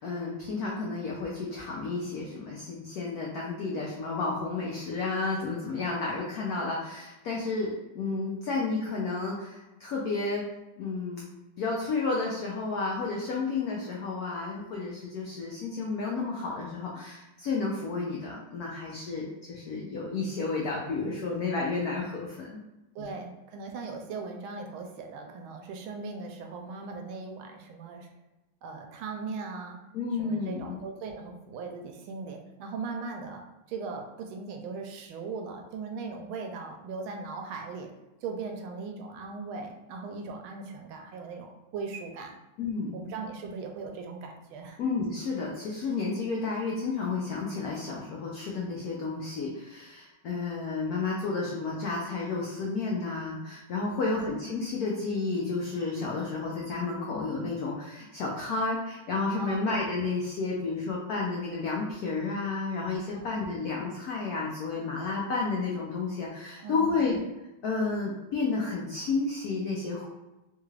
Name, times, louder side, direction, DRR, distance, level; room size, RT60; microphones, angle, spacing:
voice 1, 0.0-10.4 10.8-11.3 11.6-22.6 23.0-23.1 29.9-30.8 42.6-43.0 44.8-67.2 67.6-70.1, left 3 dB, 85° left, -3 dB, 0.8 m, -31 dB
voice 2, 22.9-28.1 28.6-29.8 30.2-33.4 33.7-37.9 38.2-42.4 42.9-44.8 53.9-54.2 59.4-59.7 63.1-63.3 66.6-67.1, right 4 dB, 80° right, 3 dB, 1.4 m, -39 dB
3.5 x 2.3 x 3.1 m, 1.0 s
omnidirectional pair, 2.3 m